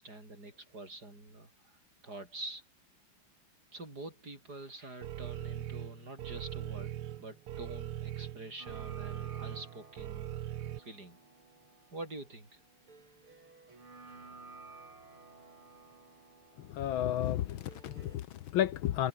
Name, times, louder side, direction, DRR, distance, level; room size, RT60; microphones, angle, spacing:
voice 1, 0.0-2.7 3.7-10.4 10.8-11.2 11.9-12.6, right 2 dB, 45° right, 7.3 m, -46 dB
sound 1, 5.0-10.8, right 12 dB, 90° right, 1.9 m, -40 dB
sound 2, 8.6-18.2, right 3 dB, 70° right, 6.0 m, -55 dB
voice 2, 16.6-19.1, left 12 dB, 70° left, 1.6 m, -32 dB
omnidirectional pair, 2.4 m